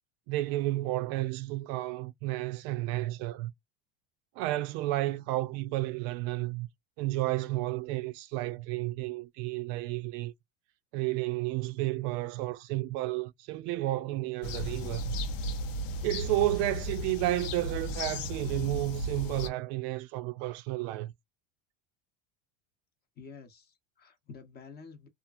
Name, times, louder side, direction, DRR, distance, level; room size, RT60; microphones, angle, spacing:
voice 1, 0.3-3.5 4.4-6.7 7.0-10.3 10.9-15.1 16.0-21.1, right 17 dB, 60° right, 0.4 m, -32 dB
sound 1, 14.4-19.5, left 1 dB, 85° left, 1.0 m, -35 dB
voice 2, 23.2-25.1, left 5 dB, 25° left, 0.8 m, -49 dB
2.9 x 2.5 x 2.4 m
cardioid pair, 150°, 37 cm